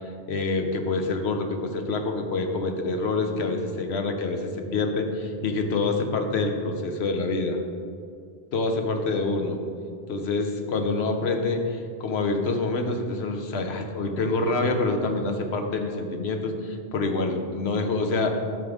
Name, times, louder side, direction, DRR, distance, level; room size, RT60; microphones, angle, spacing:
voice 1, 0.3-7.6 8.5-9.6 10.1-18.4, left 3 dB, 80° left, 5 dB, 1.1 m, -26 dB
13.0 x 5.7 x 3.5 m, 2.2 s
omnidirectional pair, 1.1 m